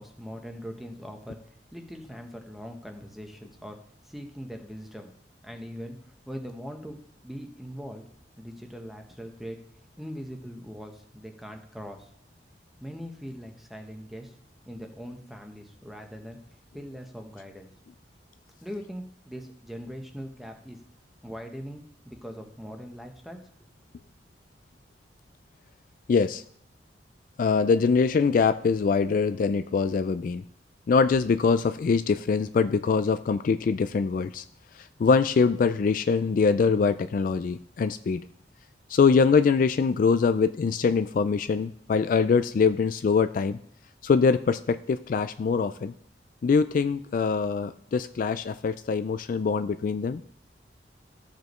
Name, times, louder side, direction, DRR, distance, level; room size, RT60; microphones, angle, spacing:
voice 1, 0.0-3.8 4.0-5.1 5.4-8.1 8.4-9.6 10.0-12.1 12.8-14.3 14.6-16.4 16.7-17.7 18.6-20.8 21.2-23.7, equal, ahead, 4 dB, 1.0 m, -41 dB
voice 2, 26.1-26.4 27.4-30.4 30.9-34.4 34.7-38.2 38.9-43.6 44.0-45.9 46.4-50.2, left 5 dB, 50° left, 11 dB, 0.3 m, -23 dB
14.0 x 5.1 x 3.1 m, 0.64 s
head